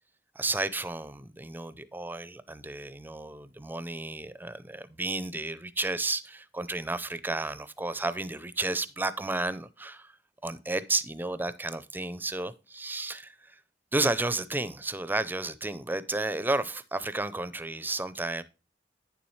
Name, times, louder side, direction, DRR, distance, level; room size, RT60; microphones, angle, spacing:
voice 1, 0.4-10.2 10.4-13.6 13.9-18.4, right 2 dB, 10° right, 0.5 m, -32 dB
9.2 x 7.1 x 3.1 m
head